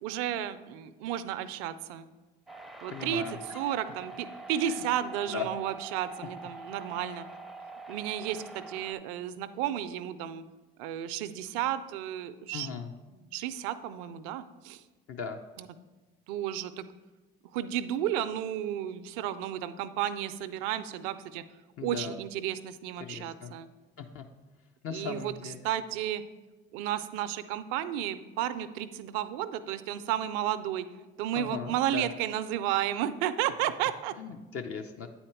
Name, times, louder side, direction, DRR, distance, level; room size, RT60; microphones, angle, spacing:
voice 1, 0.0-2.1 2.8-3.2 3.5-7.3 7.9-10.4 10.8-12.7 13.1-14.8 15.6-15.7 16.3-16.8 17.5-21.4 21.8-23.7 24.9-25.3 25.6-26.2 26.7-30.9 31.2-34.1, right 11 dB, 80° right, 13 dB, 0.5 m, -32 dB
sound 1, 2.5-8.9, right 3 dB, ahead, 0.5 m, -45 dB
voice 2, 2.9-3.7 4.6-4.8 5.2-5.5 12.5-12.9 15.1-15.4 21.8-22.2 23.0-23.5 24.0-24.2 24.8-25.6 31.3-32.1 34.1-35.1, left 6 dB, 50° left, 5 dB, 0.6 m, -38 dB
8.7 x 4.2 x 4.5 m, 1.2 s
hypercardioid pair, 55°, 29 cm